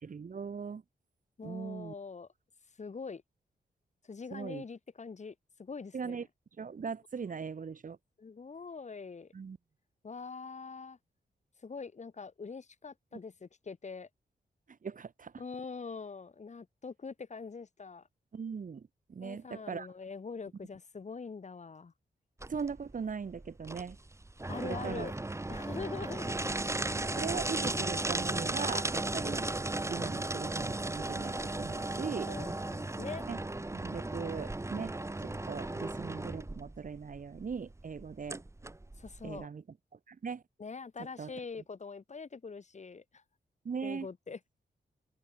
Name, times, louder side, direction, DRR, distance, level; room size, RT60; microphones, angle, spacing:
voice 1, 0.0-0.8 1.4-1.9 4.3-4.6 5.9-6.3 6.6-8.0 9.3-9.6 14.7-15.3 18.3-19.9 22.5-24.0 24.6-25.1 27.0-29.5 29.9-32.3 33.3-33.4 33.7-38.4 39.2-39.6 39.9-40.4 41.2-41.3 43.6-44.1, right 6 dB, 50° right, 2.5 m, -40 dB
voice 2, 1.4-2.3 2.8-3.2 4.0-6.2 8.2-9.3 10.0-11.0 11.6-14.1 15.4-18.1 19.2-21.9 24.5-25.1 25.5-26.5 32.3-33.3 39.0-39.5 40.6-43.2 43.8-44.4, left 5 dB, 45° left, 4.2 m, -43 dB
sound 1, 22.4-39.4, right 2 dB, 15° right, 3.1 m, -36 dB
wide cardioid pair, 135°, 17 cm